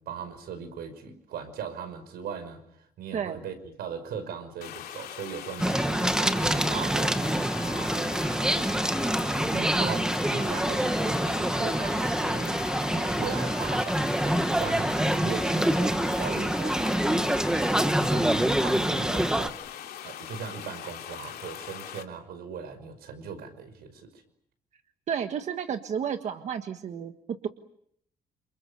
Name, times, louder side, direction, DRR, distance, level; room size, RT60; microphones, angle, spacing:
voice 1, 0.0-8.9 9.7-19.6 20.0-24.2, right 6 dB, 90° right, 10 dB, 5.8 m, -39 dB
sound 1, 4.6-22.0, left 10 dB, 90° left, 3.0 m, -41 dB
sound 2, 5.6-19.5, right 1 dB, 5° right, 1.2 m, -26 dB
voice 2, 9.5-10.0 25.1-27.5, right 7 dB, 45° right, 7 dB, 1.5 m, -32 dB
29.5 x 28.5 x 7.1 m, 0.71 s
cardioid pair, 165°, 16 cm